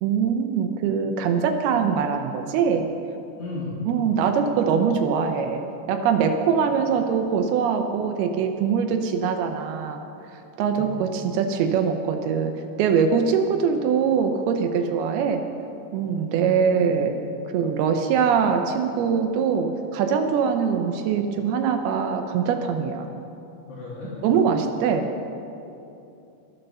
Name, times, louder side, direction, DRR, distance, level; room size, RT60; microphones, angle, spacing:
voice 1, 0.0-2.9 3.9-5.6 5.9-10.0 10.6-12.5 12.8-15.4 15.9-17.1 17.5-23.1 24.2-25.1, right 6 dB, 80° right, 5 dB, 2.3 m, -23 dB
voice 2, 3.4-3.8 10.7-10.9 16.3-16.9 23.7-24.3, left 3 dB, 70° left, -6 dB, 4.4 m, -35 dB
12.5 x 11.0 x 6.7 m, 2.8 s
omnidirectional pair, 5.3 m